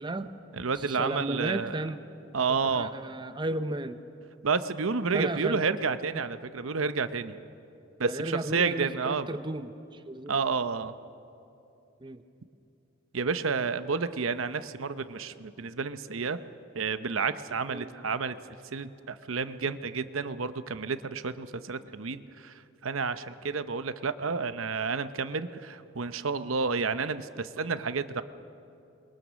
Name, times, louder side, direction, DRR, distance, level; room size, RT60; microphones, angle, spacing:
voice 1, 0.0-0.4 0.8-2.0 2.7-4.0 5.1-5.6 8.1-10.4 12.0-12.2 17.7-17.9, right 2 dB, 25° right, 9 dB, 0.7 m, -34 dB
voice 2, 0.5-1.9 2.3-3.0 4.4-7.4 8.0-9.3 10.3-10.9 13.1-16.4 16.7-22.5 22.8-28.2, right 5 dB, 75° right, 11 dB, 0.8 m, -30 dB
27.5 x 22.0 x 6.3 m, 2.7 s
head